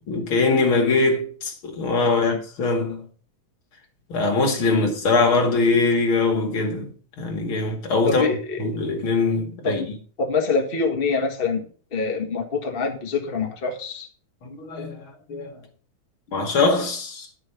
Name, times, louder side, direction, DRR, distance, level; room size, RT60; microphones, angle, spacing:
voice 1, 0.1-3.0 4.1-8.3 8.6-9.9 14.4-15.5 16.3-17.3, left 3 dB, 40° left, 2.6 m, -22 dB
voice 2, 2.0-2.4 4.7-4.8 8.1-8.6 9.6-9.9 10.2-14.1, left 4 dB, 80° left, 0.5 m, -25 dB
12.0 x 6.3 x 5.9 m
omnidirectional pair, 4.2 m